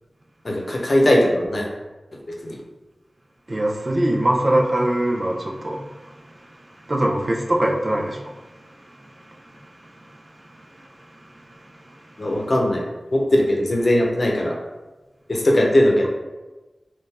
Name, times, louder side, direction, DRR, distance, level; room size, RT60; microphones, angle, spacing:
voice 1, 0.4-1.7 2.4-2.6 12.2-12.8 13.1-14.5 15.3-16.1, left 1 dB, 50° left, 0.8 m, -19 dB
voice 2, 3.5-12.5, right 1 dB, 45° right, 0.5 m, -25 dB
3.6 x 2.5 x 4.2 m
wide cardioid pair, 80°, 0 cm